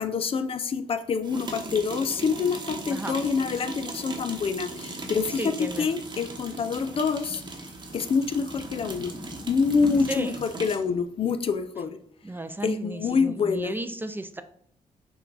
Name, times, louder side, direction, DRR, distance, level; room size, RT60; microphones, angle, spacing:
voice 1, 0.0-7.4 7.9-9.1 9.5-12.0 12.6-13.7, left 5 dB, 45° left, 10 dB, 0.4 m, -26 dB
sound 1, 1.2-10.9, right 3 dB, 35° right, 0.9 m, -39 dB
sound 2, 3.9-10.1, left 1 dB, ahead, 0.8 m, -44 dB
voice 2, 5.4-5.9 10.1-10.4 12.2-14.4, right 1 dB, 15° right, 11 dB, 0.4 m, -34 dB
5.6 x 2.3 x 4.0 m, 0.63 s
cardioid pair, 85°, 13 cm